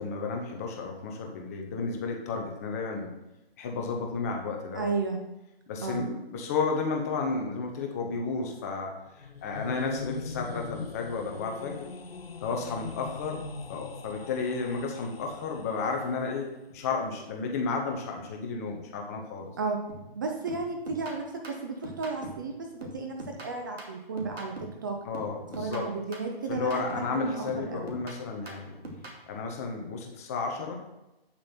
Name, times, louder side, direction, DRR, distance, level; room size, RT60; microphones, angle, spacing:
voice 1, 0.0-3.1 3.6-4.9 5.7-11.9 12.4-19.5 25.0-25.9 26.5-28.8 29.3-30.8, left 4 dB, 15° left, 2 dB, 0.7 m, -32 dB
voice 2, 4.7-5.2 5.8-6.0 19.6-19.8 20.1-24.5 24.8-25.0 25.6-27.9, right 4 dB, 20° right, 2 dB, 0.6 m, -33 dB
sound 1, 9.1-16.1, left 4 dB, 70° left, 0.8 m, -41 dB
sound 2, 19.9-20.2 20.5-22.5 22.8-24.8 25.1-27.2 27.5-29.2, right 1 dB, 75° right, 2.6 m, -43 dB
8.7 x 7.1 x 4.3 m, 0.95 s
figure-of-eight pair, 140°, 31 cm